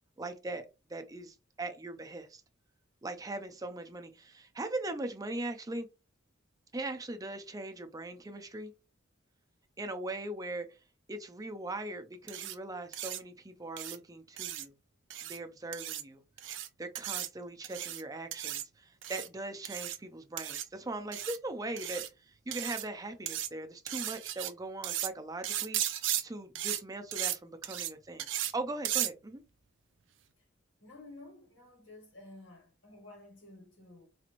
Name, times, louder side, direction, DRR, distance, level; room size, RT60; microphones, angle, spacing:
voice 1, 0.2-2.4 3.0-5.9 6.7-8.7 9.8-10.8 11.1-14.7 15.2-16.2 16.8-28.3 28.5-29.4, right 2 dB, 20° right, 0.5 m, -40 dB
sound 1, 12.3-12.5 12.9-13.2 13.8-14.0 14.4-14.6 15.1-15.4 15.7-16.0 16.4-16.7 16.9-17.3 17.6-18.0 18.3-18.6 19.0-19.3 19.6-20.0 20.4-20.6 21.1-21.4 21.8-22.1 22.5-22.9 23.3-23.5 23.9-24.5 24.8-25.1 25.4-26.2 26.5-26.8 27.1-27.4 27.6-27.9 28.2-28.5 28.8-29.1, right 12 dB, 70° right, 0.5 m, -35 dB
voice 2, 30.8-34.1, left 2 dB, 80° left, 1.5 m, -52 dB
4.1 x 3.0 x 2.5 m
head